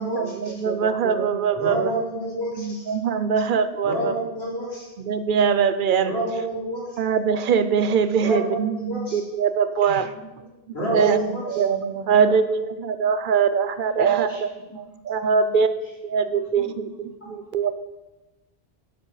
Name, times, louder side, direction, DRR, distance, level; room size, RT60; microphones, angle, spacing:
voice 1, 0.0-1.9 2.6-4.2 5.0-6.1 7.0-10.1 10.8-14.5 14.8-15.7 16.0-16.9 17.3-17.7, right 6 dB, 60° right, 12 dB, 0.6 m, -22 dB
voice 2, 1.6-2.9 3.8-4.9 6.0-6.8 8.2-8.6 8.9-9.2 10.7-11.4, right 1 dB, 80° left, -8 dB, 3.5 m, -28 dB
voice 3, 10.0-11.1 14.0-14.4 14.7-14.8 15.2-15.6 16.4-17.1 17.4-17.5, equal, 20° left, -1 dB, 1.8 m, -43 dB
11.0 x 5.0 x 4.8 m, 1.1 s
omnidirectional pair, 1.1 m